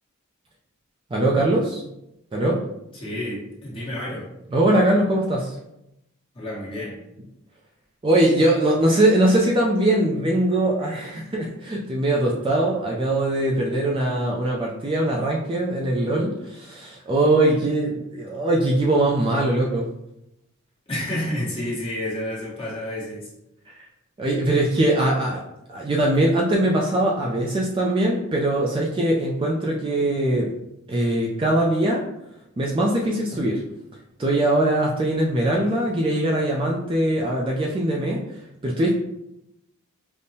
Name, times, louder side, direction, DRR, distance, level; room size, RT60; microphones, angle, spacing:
voice 1, 1.1-1.8 2.3-2.6 4.5-5.5 8.0-19.9 23.7-23.8 24.2-25.4 25.7-30.5 30.9-32.0 32.6-33.6 34.2-38.2 38.6-38.9, right 1 dB, 25° right, -2 dB, 0.3 m, -21 dB
voice 2, 2.9-4.3 6.3-7.0 20.9-23.3, left 1 dB, 25° left, -7 dB, 1.2 m, -30 dB
5.2 x 2.1 x 2.7 m, 0.84 s
head